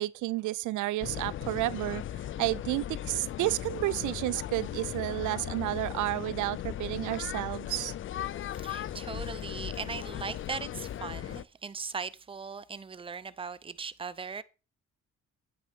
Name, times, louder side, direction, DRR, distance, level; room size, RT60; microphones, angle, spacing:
voice 1, 0.0-2.0 2.4-7.9, right 17 dB, 80° right, 0.5 m, -31 dB
sound 1, 1.0-11.4, left 11 dB, 45° left, 0.4 m, -37 dB
voice 2, 8.5-14.4, right 5 dB, 20° right, 0.6 m, -39 dB
9.5 x 7.7 x 3.5 m
cardioid pair, 90°, 30 cm